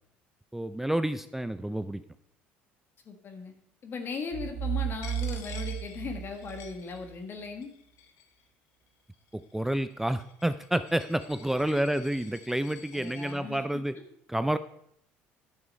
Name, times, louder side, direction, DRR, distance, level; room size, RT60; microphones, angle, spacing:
voice 1, 0.5-2.0 9.5-14.0 14.3-14.6, right 1 dB, 5° right, 12 dB, 0.4 m, -29 dB
voice 2, 3.0-3.5 3.8-7.7 11.7-11.8 12.9-13.6, left 5 dB, 45° left, 5 dB, 1.5 m, -38 dB
sound 1, 4.3-7.1, right 10 dB, 55° right, 0.7 m, -34 dB
Coin (dropping), 5.0-7.3 7.6-8.4 9.1-13.4, left 7 dB, 70° left, 1.4 m, -50 dB
9.6 x 6.0 x 5.2 m, 0.70 s
supercardioid pair, 85°, 5 cm